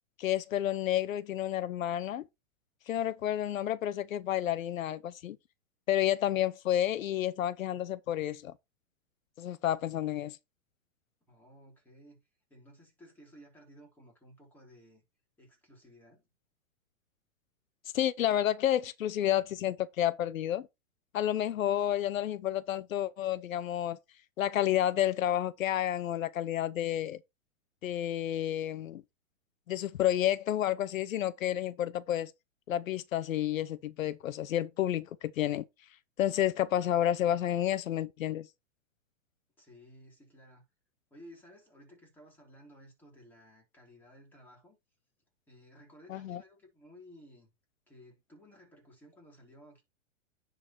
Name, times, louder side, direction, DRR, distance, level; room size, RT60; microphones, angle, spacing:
voice 1, 0.2-2.2 2.9-5.4 5.9-8.5 9.4-10.4 17.9-20.7 21.1-24.0 24.4-27.2 27.8-29.0 29.7-32.3 32.7-35.6 36.2-38.5 46.1-46.4, left 12 dB, 90° left, 0.8 m, -30 dB
voice 2, 11.3-12.2 12.5-15.0 15.4-16.3 39.6-40.6 41.1-44.8 45.5-47.5 47.9-49.8, equal, 5° left, 3.5 m, -56 dB
10.0 x 4.0 x 4.4 m
hypercardioid pair, 150°, 39 cm